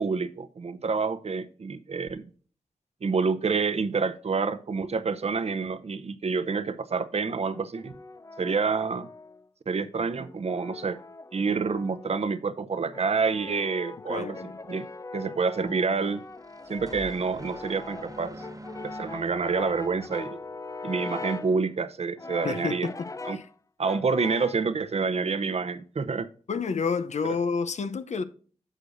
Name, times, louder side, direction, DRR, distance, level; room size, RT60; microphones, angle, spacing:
voice 1, 0.0-2.2 3.0-7.9 8.4-9.1 9.7-11.0 11.3-14.9 15.1-16.2 16.7-18.4 18.8-20.4 20.8-22.9 23.2-23.4 23.8-26.3, right 4 dB, 60° right, 0.7 m, -28 dB
Brass instrument, 7.5-9.5 10.2-12.3 12.9-21.6 22.2-23.5 23.8-24.7, left 3 dB, 25° left, 0.5 m, -41 dB
voice 2, 14.1-14.6 22.4-23.1 23.3-23.5 26.5-28.2, left 5 dB, 70° left, 0.7 m, -29 dB
sound 1, 16.2-20.8, right 1 dB, 30° right, 1.0 m, -46 dB
9.9 x 6.5 x 2.6 m
cardioid pair, 55°, 12 cm